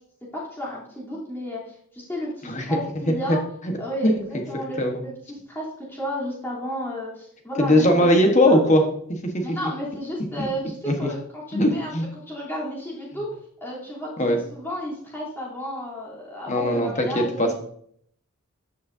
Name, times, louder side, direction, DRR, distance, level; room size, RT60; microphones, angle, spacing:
voice 1, 0.3-3.4 3.8-8.6 9.4-11.2 11.5-11.9 12.3-13.3 13.6-17.5, equal, 10° left, -7 dB, 3.3 m, -33 dB
voice 2, 2.4-2.8 3.1-3.4 3.6-3.7 4.0-4.1 4.8-5.0 7.6-8.8 9.1-9.6 10.4-10.5 10.8-11.1 11.5-12.0 14.2-14.4 16.5-17.5, left 1 dB, 35° left, 3 dB, 1.3 m, -20 dB
13.5 x 6.4 x 2.7 m, 0.67 s
head